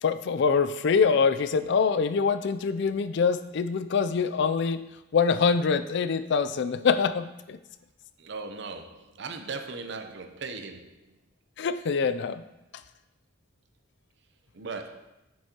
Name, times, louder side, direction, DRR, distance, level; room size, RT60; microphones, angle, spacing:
voice 1, 0.0-4.8 5.1-7.6 11.6-12.4, left 5 dB, 65° left, 12 dB, 0.4 m, -24 dB
voice 2, 8.2-11.0 14.5-15.0, right 4 dB, 65° right, 6 dB, 0.7 m, -38 dB
7.8 x 6.3 x 2.9 m, 0.93 s
head